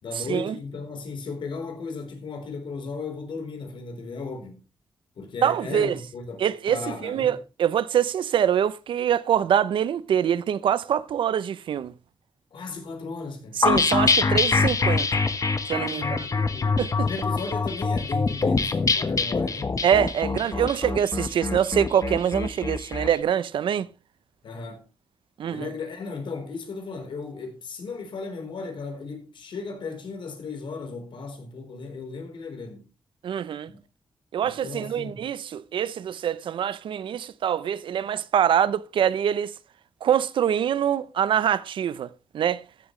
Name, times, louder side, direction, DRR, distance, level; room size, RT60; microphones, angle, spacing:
voice 1, 0.0-4.6 5.2-7.4 12.5-13.6 15.8-19.8 24.4-24.9 25.5-32.9 33.7-33.8 34.4-35.2, left 4 dB, 80° left, 4.2 m, -36 dB
voice 2, 5.4-6.0 6.4-11.9 13.6-15.1 15.7-16.2 16.8-17.1 19.8-23.9 25.4-25.7 33.2-33.7 34.3-39.5 40.0-42.6, right 9 dB, 90° right, 0.7 m, -24 dB
sound 1, 13.6-23.1, left 4 dB, 40° left, 1.4 m, -24 dB
14.5 x 11.5 x 3.2 m
cardioid pair, 95°, 8 cm